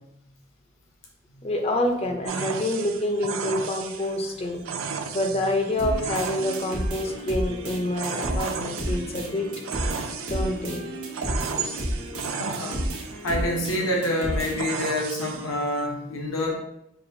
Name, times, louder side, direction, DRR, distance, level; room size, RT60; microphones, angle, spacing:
voice 1, 1.4-4.6 5.1-9.5 10.3-10.9, left 1 dB, 30° left, 3 dB, 0.5 m, -27 dB
sound 1, 2.3-15.9, right 6 dB, 70° right, 0.4 m, -35 dB
sound 2, 5.8-14.8, equal, 90° right, 1.0 m, -32 dB
voice 2, 12.3-12.8 13.2-16.5, left 1 dB, 70° left, -1 dB, 0.7 m, -27 dB
5.8 x 2.4 x 2.6 m, 0.82 s
head